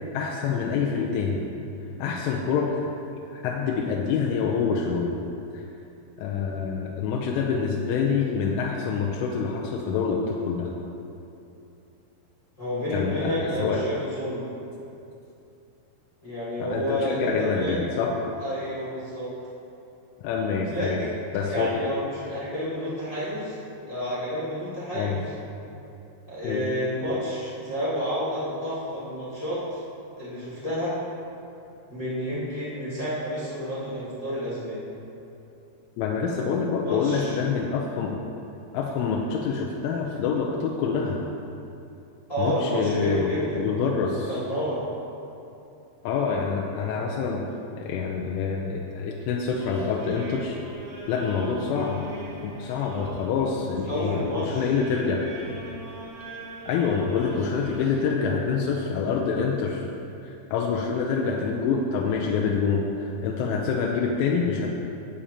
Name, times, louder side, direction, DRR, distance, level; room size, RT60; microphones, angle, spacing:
voice 1, 0.1-1.4 2.0-2.7 3.3-5.1 5.5-5.6 6.2-10.7 12.9-13.8 16.6-18.1 20.2-21.0 21.3-21.8 24.9-25.2 26.4-26.7 36.0-38.2 38.7-41.2 42.4-44.3 46.0-47.5 47.8-50.6 51.1-52.0 52.4-55.3 56.7-59.9 60.2-64.7, left 5 dB, 85° left, -1 dB, 3.1 m, -26 dB
voice 2, 12.6-14.5 16.2-17.8 18.4-19.3 20.7-23.6 23.8-25.2 26.3-29.8 30.2-30.9 31.9-34.8 36.8-37.3 42.3-43.7 44.3-44.8 53.9-54.7, equal, 50° left, -10 dB, 0.9 m, -30 dB
sound 1, 49.6-58.1, left 1 dB, 80° right, 4.8 m, -41 dB
15.0 x 8.8 x 2.9 m, 2.7 s
omnidirectional pair, 5.9 m